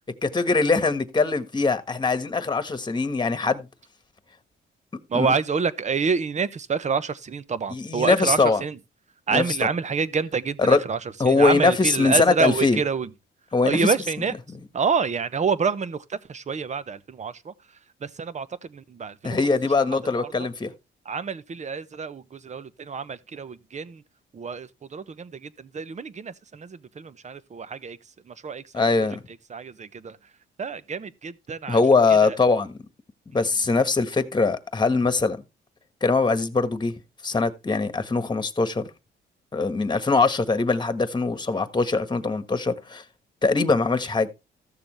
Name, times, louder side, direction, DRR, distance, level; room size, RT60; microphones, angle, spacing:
voice 1, 0.2-3.7 5.1-5.3 7.7-8.6 9.3-9.7 10.6-10.8 11.2-12.8 13.5-13.9 19.2-20.7 28.7-29.2 31.7-32.8 33.3-35.4 36.0-36.9 37.2-38.9 39.5-43.0 43.4-44.3, left 4 dB, 20° left, 1.5 m, -22 dB
voice 2, 5.1-8.8 9.3-11.0 11.2-13.1 13.6-14.3 14.7-16.0 16.3-17.5 18.0-18.5 18.7-19.4 20.2-20.3 21.1-24.0 24.3-28.0 28.3-29.1 29.5-30.2 30.6-31.8 32.2-32.3, right 5 dB, 35° right, 1.0 m, -27 dB
14.5 x 6.9 x 3.2 m
cardioid pair, 90°, 20 cm